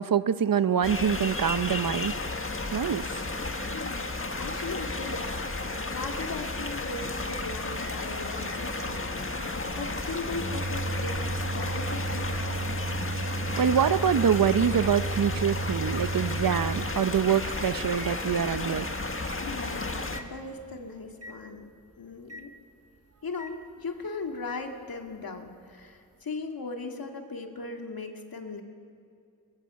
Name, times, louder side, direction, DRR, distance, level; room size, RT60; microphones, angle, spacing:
voice 1, 0.0-2.1 2.7-3.1 13.6-18.9, right 8 dB, 70° right, 14 dB, 0.8 m, -25 dB
sound 1, 0.8-20.2, left 2 dB, 35° left, 1.7 m, -33 dB
voice 2, 3.7-5.4 5.8-12.6 19.3-19.9 20.2-21.7 22.0-22.5 23.2-28.6, left 3 dB, 75° left, 3 dB, 2.3 m, -38 dB
Microwave oven, 8.2-20.8 21.2-21.4 22.3-22.5 23.4-23.6 24.5-24.6, right 2 dB, 40° right, 1.3 m, -36 dB
23.0 x 20.5 x 7.0 m, 2.5 s
wide cardioid pair, 65°, 35 cm